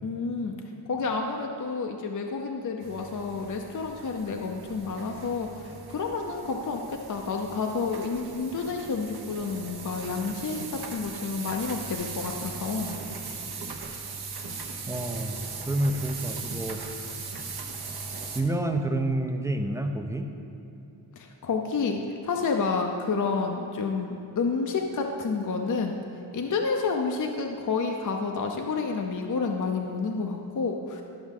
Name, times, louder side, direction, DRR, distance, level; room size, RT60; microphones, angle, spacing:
voice 1, 0.0-0.6 0.9-13.0 21.2-26.0 26.3-31.0, left 4 dB, 45° left, 2 dB, 0.5 m, -30 dB
sound 1, 2.8-18.4, right 4 dB, 60° right, 0.9 m, -39 dB
voice 2, 14.9-15.4 15.7-17.0 18.3-20.3, right 1 dB, 5° right, 4 dB, 0.4 m, -28 dB
11.5 x 6.1 x 3.7 m, 2.9 s
wide cardioid pair, 120°, 43 cm